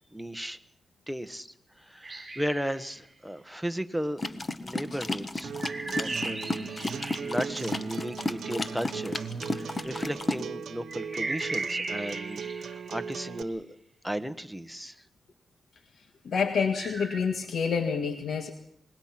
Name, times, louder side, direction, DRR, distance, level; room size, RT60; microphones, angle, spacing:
voice 1, 0.1-0.6 1.1-4.2 4.6-5.5 6.0-13.7 14.0-15.0, equal, ahead, 9 dB, 1.3 m, -35 dB
sound 1, 2.0-3.0 5.6-8.0 10.9-13.5 16.7-17.2, right 3 dB, 25° right, 4.8 m, -37 dB
sound 2, 4.2-10.4, left 2 dB, 30° left, 1.3 m, -33 dB
Acoustic guitar, 5.4-13.4, right 6 dB, 85° right, 1.1 m, -38 dB
voice 2, 16.2-18.5, left 6 dB, 75° left, 6 dB, 1.7 m, -28 dB
26.0 x 21.5 x 6.0 m, 0.73 s
wide cardioid pair, 115°, 0 cm